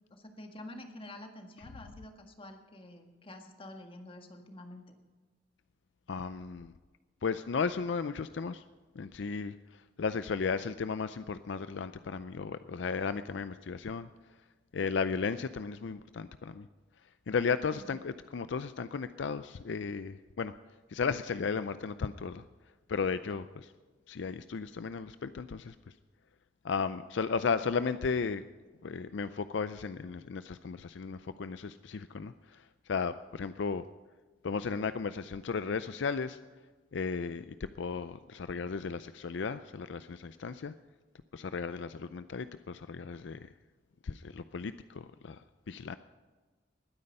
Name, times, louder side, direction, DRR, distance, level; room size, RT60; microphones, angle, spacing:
voice 1, 0.1-4.8 17.9-18.0, left 1 dB, 30° left, 5 dB, 1.7 m, -48 dB
voice 2, 6.1-6.7 7.2-8.6 9.0-14.1 14.7-16.7 17.3-20.5 20.9-22.4 22.9-23.7 24.1-25.9 26.6-28.4 28.8-33.8 34.4-36.4 36.9-40.7 41.3-43.5 44.0-46.0, left 5 dB, 65° left, 12 dB, 0.4 m, -35 dB
20.5 x 9.7 x 5.4 m, 1.4 s
head